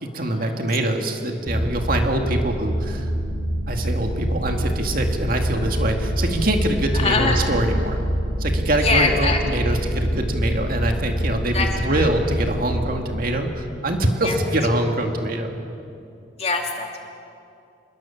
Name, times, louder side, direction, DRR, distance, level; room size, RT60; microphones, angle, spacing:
voice 1, 0.0-3.1 3.7-8.0 8.4-15.5, right 1 dB, 50° right, 3 dB, 2.3 m, -24 dB
sound 1, 1.5-14.3, equal, 15° right, 5.4 m, -26 dB
voice 2, 6.9-7.5 8.8-9.4 11.5-11.7 12.0-12.1 14.2-14.4 16.4-17.1, left 3 dB, 35° left, 2 dB, 2.5 m, -23 dB
26.0 x 22.0 x 7.3 m, 2.6 s
head